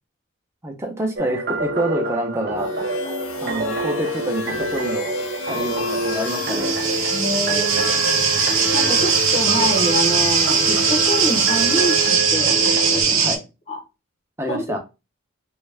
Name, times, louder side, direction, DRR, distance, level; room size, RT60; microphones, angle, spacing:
voice 1, 0.6-2.7 3.4-5.1 5.5-6.8 13.1-13.4 14.4-14.8, right 1 dB, 15° right, 3 dB, 0.6 m, -27 dB
sound 1, 1.2-13.0, right 2 dB, 50° right, 0.6 m, -27 dB
sound 2, 2.6-12.2, left 6 dB, 85° left, 0.6 m, -33 dB
sound 3, 5.7-13.4, right 6 dB, 80° right, 0.7 m, -20 dB
voice 2, 7.1-8.0 8.7-13.4 13.7-13.8 14.5-14.7, left 1 dB, 30° left, 1 dB, 0.7 m, -26 dB
3.3 x 2.4 x 3.3 m, 0.27 s
head